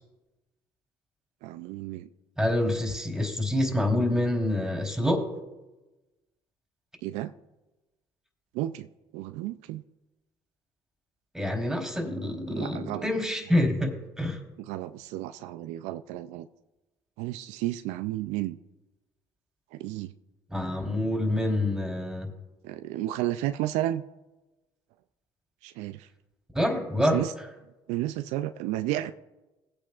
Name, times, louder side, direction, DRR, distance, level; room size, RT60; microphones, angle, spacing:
voice 1, 1.4-2.1 7.0-7.3 8.5-8.9 9.1-9.8 12.5-13.1 14.6-16.5 17.2-18.6 19.7-20.1 22.6-24.0 25.6-26.1 27.1-27.3 27.9-29.1, right 14 dB, 75° right, 11 dB, 0.4 m, -32 dB
voice 2, 2.4-5.2 11.3-14.4 20.5-22.3 26.5-27.2, left 1 dB, 5° right, 1 dB, 3.5 m, -27 dB
19.5 x 8.7 x 2.4 m, 1.0 s
hypercardioid pair, 65°, 12 cm